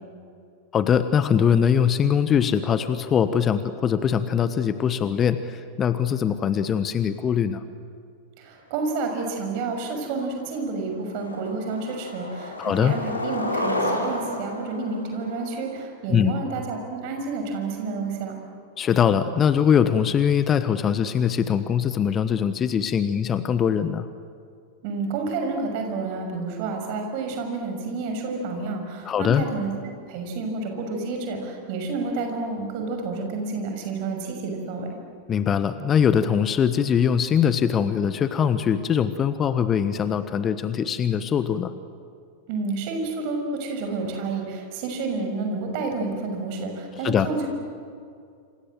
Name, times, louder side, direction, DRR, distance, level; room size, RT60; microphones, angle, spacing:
voice 1, 0.7-7.6 12.6-12.9 16.1-16.3 18.8-24.1 29.0-29.4 35.3-41.7 47.0-47.3, left 8 dB, 25° left, 12 dB, 1.2 m, -22 dB
voice 2, 8.4-18.4 24.8-29.7 30.1-35.0 42.5-47.5, right 3 dB, 45° right, 4 dB, 6.3 m, -30 dB
Skateboard, 10.0-10.1 10.5-10.8 11.2-15.8, left 1 dB, 80° left, 4.4 m, -31 dB
28.0 x 27.0 x 7.8 m, 2.3 s
figure-of-eight pair, 90°, 0 cm